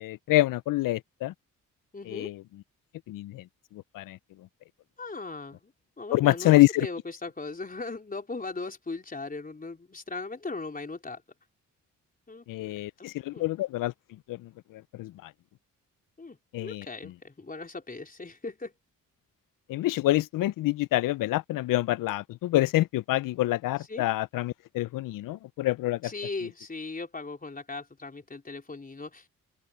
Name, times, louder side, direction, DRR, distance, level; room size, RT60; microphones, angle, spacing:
voice 1, 0.0-1.3 2.1-2.4 3.1-3.4 3.9-4.2 6.1-6.9 12.5-13.9 14.3-14.5 15.0-15.1 16.5-16.8 19.7-26.1, left 17 dB, 80° left, 0.5 m, -26 dB
voice 2, 1.9-2.3 5.0-5.7 6.0-11.2 12.3-13.1 13.3-13.4 16.2-18.7 23.8-24.0 26.0-29.3, left 3 dB, 25° left, 4.5 m, -38 dB
open air
cardioid pair, 75°, 32 cm